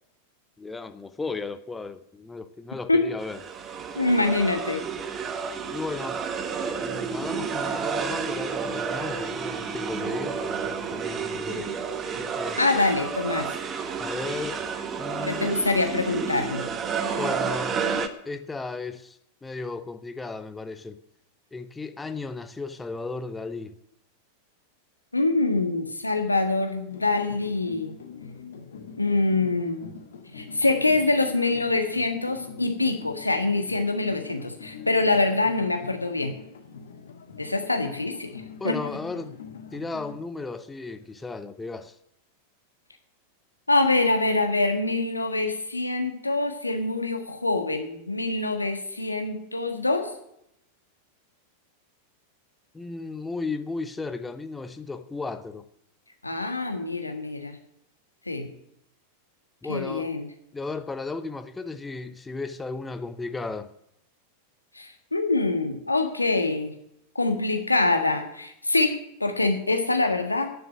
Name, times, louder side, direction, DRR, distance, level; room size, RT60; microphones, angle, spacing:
voice 1, 0.6-3.4 5.7-6.2 6.8-11.7 12.1-12.6 14.0-14.6 15.0-15.6 17.2-17.8 18.2-21.0 21.5-23.7 38.6-39.4 39.7-42.0 52.7-55.6 59.6-60.1 60.5-63.7, left 3 dB, 10° left, 0.7 m, -35 dB
sound 1, 3.2-18.1, right 6 dB, 25° right, 1.1 m, -30 dB
voice 2, 3.9-4.8 12.6-13.5 15.2-16.7 25.1-27.9 29.0-29.9 30.3-36.3 37.4-38.8 43.7-50.1 56.2-57.6 58.3-58.5 59.7-60.2 64.7-66.7 67.1-70.5, left 2 dB, 85° left, 1.6 m, -25 dB
sound 2, 26.9-40.2, left 6 dB, 65° left, 1.7 m, -44 dB
10.5 x 6.9 x 9.0 m
figure-of-eight pair, 90°, 0 cm